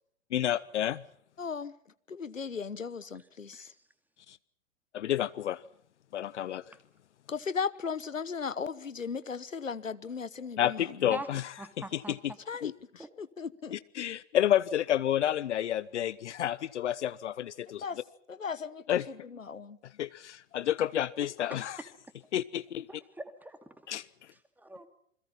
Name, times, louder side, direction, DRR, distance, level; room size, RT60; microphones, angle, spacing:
voice 1, 0.3-1.0 4.3-4.4 4.9-5.6 6.1-6.6 10.6-11.5 11.9-12.3 12.6-12.7 13.7-17.9 18.9-19.1 20.0-21.8 22.3-22.9 23.9-24.0, left 11 dB, 65° left, 17 dB, 0.9 m, -30 dB
voice 2, 1.4-1.7 2.1-3.7 7.3-10.8 12.5-13.8 17.8-18.0 18.3-19.0 19.3-19.8, left 6 dB, 90° left, 16 dB, 1.1 m, -36 dB
voice 3, 11.6-12.2 13.0-13.1 22.9-23.9 24.6-24.9, right 1 dB, 5° right, 9 dB, 2.6 m, -42 dB
28.5 x 22.0 x 5.7 m, 0.68 s
figure-of-eight pair, 110°, 38 cm